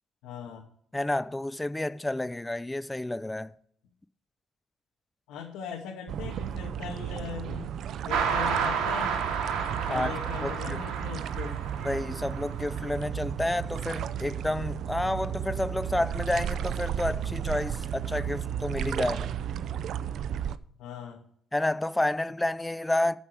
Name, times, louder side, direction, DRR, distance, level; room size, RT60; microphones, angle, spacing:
voice 1, 0.2-0.6 5.3-9.1 9.9-11.6 20.8-21.2, left 7 dB, 85° left, 2.4 m, -40 dB
voice 2, 0.9-3.5 9.9-10.1 10.4-10.8 11.8-19.3 21.5-23.2, left 1 dB, 5° left, 0.5 m, -30 dB
sound 1, 6.1-20.6, right 9 dB, 50° right, 0.6 m, -34 dB
sound 2, 8.1-12.9, right 6 dB, 80° right, 2.5 m, -31 dB
13.0 x 7.0 x 4.8 m
cardioid pair, 155°, 0 cm